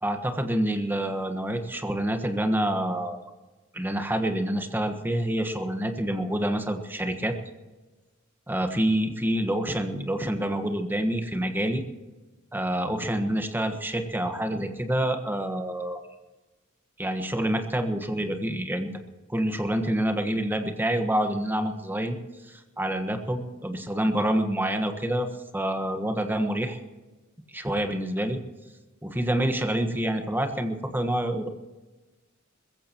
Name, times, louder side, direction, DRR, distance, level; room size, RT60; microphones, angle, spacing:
voice 1, 0.0-3.2 3.7-7.4 8.5-11.8 12.5-16.0 17.0-18.9 19.3-22.2 22.5-25.3 25.5-26.8 27.5-28.4 29.0-31.5, right 1 dB, 10° right, 6 dB, 1.4 m, -27 dB
21.5 x 15.0 x 3.0 m, 1.2 s
head